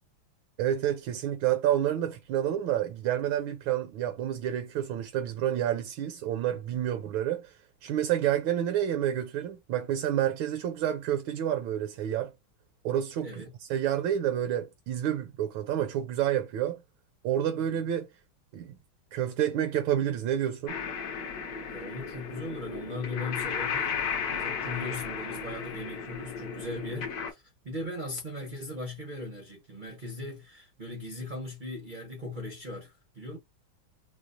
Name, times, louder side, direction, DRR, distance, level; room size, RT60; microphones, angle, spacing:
voice 1, 0.6-7.5 7.8-12.3 12.8-16.8 17.2-18.1 18.5-18.8 19.1-20.7, right 10 dB, 75° right, 1.4 m, -29 dB
voice 2, 13.2-13.5 17.6-17.9 21.7-33.4, left 1 dB, 50° right, 0.6 m, -39 dB
sound 1, 20.7-27.3, left 6 dB, 65° left, 1.0 m, -34 dB
4.7 x 2.0 x 2.5 m
omnidirectional pair, 2.3 m